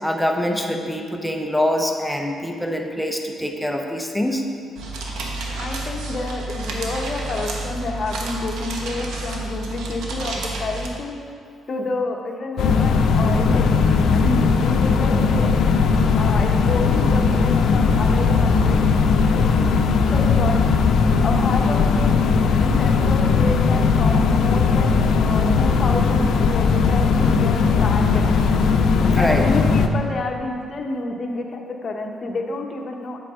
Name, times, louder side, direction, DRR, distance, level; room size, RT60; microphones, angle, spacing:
voice 1, 0.0-4.4 29.0-29.5, left 1 dB, 5° left, 3 dB, 0.8 m, -24 dB
sound 1, 4.8-10.9, right 2 dB, 80° right, 1.2 m, -30 dB
voice 2, 5.6-11.1 11.7-15.5 16.1-18.8 20.1-20.6 21.2-28.3 29.1-33.2, left 2 dB, 45° left, 1 dB, 1.1 m, -29 dB
sound 2, 12.6-29.9, left 5 dB, 75° left, 0.6 m, -18 dB
9.5 x 8.2 x 3.8 m, 2.5 s
cardioid pair, 90°, 0 cm